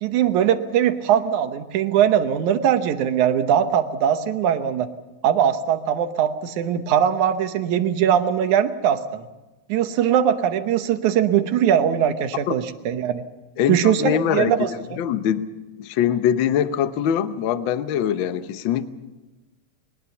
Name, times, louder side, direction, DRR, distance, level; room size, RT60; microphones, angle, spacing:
voice 1, 0.0-4.9 5.2-9.2 9.7-13.2 13.7-14.7, right 9 dB, 75° right, 9 dB, 2.4 m, -21 dB
voice 2, 13.6-15.5 15.8-18.8, left 9 dB, 85° left, 11 dB, 1.0 m, -23 dB
21.5 x 19.5 x 7.1 m, 1.1 s
omnidirectional pair, 3.5 m